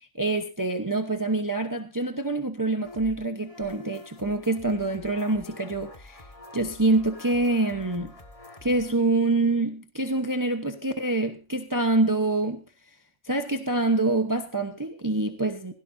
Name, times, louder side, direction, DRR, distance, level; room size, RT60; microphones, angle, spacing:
voice 1, 0.0-6.2 6.5-8.1 8.6-12.6 13.2-15.7, right 2 dB, 15° right, 1.0 m, -26 dB
sound 1, 2.8-8.9, left 2 dB, 30° left, 1.7 m, -47 dB
17.0 x 16.5 x 2.7 m
omnidirectional pair, 1.3 m